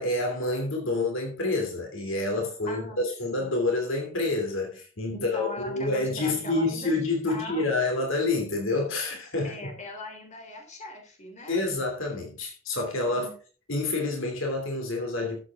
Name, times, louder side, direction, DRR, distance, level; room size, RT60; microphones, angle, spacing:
voice 1, 0.0-9.7 11.5-13.3 13.7-15.4, left 2 dB, 65° left, 3.0 m, -28 dB
voice 2, 2.7-3.0 5.1-7.0 7.3-7.8 9.4-11.6 13.1-13.3, left 1 dB, 35° left, 3.5 m, -40 dB
13.0 x 8.1 x 3.6 m
head